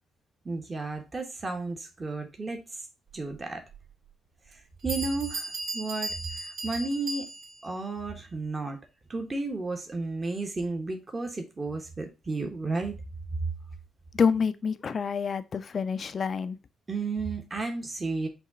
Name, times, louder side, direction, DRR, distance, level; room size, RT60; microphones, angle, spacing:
voice 1, 0.4-2.6 3.1-3.6 4.5-7.3 7.6-8.8 9.1-13.0 16.9-18.3, right 3 dB, 30° right, 1.0 m, -33 dB
Bell, 3.7-3.8 4.5-4.6 4.9-7.7, right 2 dB, 75° right, 2.0 m, -36 dB
voice 2, 14.1-16.6, left 6 dB, 50° left, 0.4 m, -27 dB
5.8 x 2.3 x 3.8 m
supercardioid pair, 60°, 0 cm